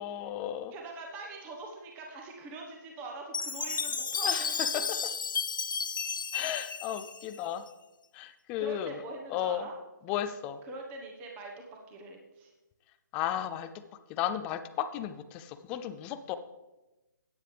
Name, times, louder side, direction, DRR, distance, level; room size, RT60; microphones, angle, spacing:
voice 1, 0.0-0.7 4.2-4.5 4.7-4.8 6.3-7.6 8.1-9.0 9.3-9.7 10.1-10.6 13.1-13.7 14.1-16.3, left 11 dB, 10° left, 11 dB, 0.3 m, -34 dB
voice 2, 0.7-4.9 8.6-9.8 10.6-12.5, right 3 dB, 15° right, 1 dB, 1.2 m, -43 dB
Chime, 3.3-7.7, left 5 dB, 80° left, 0.6 m, -33 dB
14.0 x 9.4 x 3.3 m, 1.0 s
hypercardioid pair, 160°, 11 cm